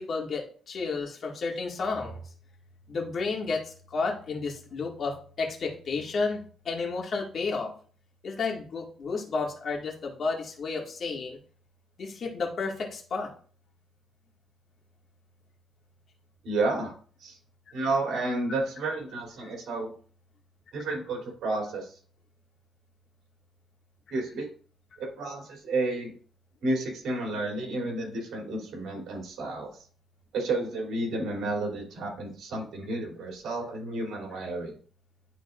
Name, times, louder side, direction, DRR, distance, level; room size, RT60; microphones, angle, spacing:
voice 1, 0.0-2.2 2.9-6.4 6.6-7.7 8.2-11.4 12.0-13.3, left 4 dB, 50° left, -1 dB, 2.0 m, -31 dB
voice 2, 16.4-16.9 17.2-17.4 17.7-19.9 20.7-22.0 24.1-24.5 25.0-26.1 26.6-29.7 30.3-34.7, right 2 dB, 75° right, -1 dB, 3.1 m, -31 dB
11.5 x 4.1 x 2.5 m, 0.44 s
cardioid pair, 115°, 0 cm